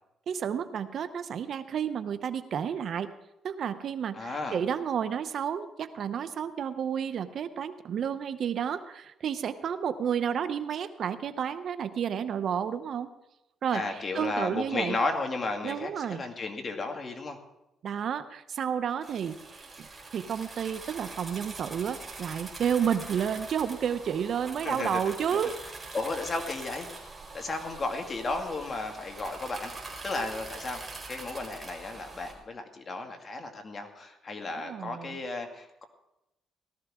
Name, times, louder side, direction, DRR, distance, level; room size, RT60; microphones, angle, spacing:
voice 1, 0.3-3.1 3.4-13.1 13.6-13.8 14.1-15.0 15.6-16.2 17.8-19.9 20.1-25.5 34.6-35.2, right 8 dB, 60° right, 12 dB, 0.8 m, -31 dB
voice 2, 4.1-4.6 13.7-17.4 24.6-25.5 25.9-26.9 27.3-29.7 30.0-30.8 31.1-35.8, left 3 dB, 35° left, 4 dB, 2.2 m, -34 dB
sound 1, 19.0-32.3, right 3 dB, 25° right, 4.3 m, -43 dB
17.5 x 13.5 x 3.7 m, 0.93 s
cardioid pair, 90°, 0 cm